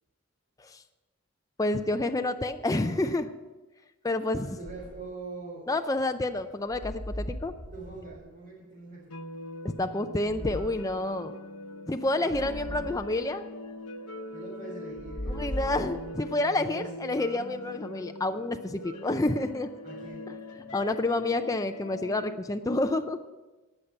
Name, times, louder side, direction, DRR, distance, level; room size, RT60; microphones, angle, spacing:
voice 1, 1.6-3.3 4.0-4.6 5.7-7.5 9.6-11.3 11.9-13.4 15.3-19.7 20.7-23.2, left 2 dB, 15° left, 7 dB, 0.4 m, -29 dB
voice 2, 4.4-5.7 7.7-9.2 12.2-13.0 14.3-15.8 16.4-16.9 19.8-20.3 20.7-20.8, right 3 dB, 35° right, -8 dB, 4.1 m, -43 dB
sound 1, 4.6-5.1 6.7-8.2 10.2-10.9 12.3-13.1 14.9-16.3, equal, 30° left, 2.9 m, -38 dB
sound 2, 9.1-22.3, left 1 dB, 90° left, 0.9 m, -42 dB
18.5 x 6.7 x 5.7 m, 1.2 s
head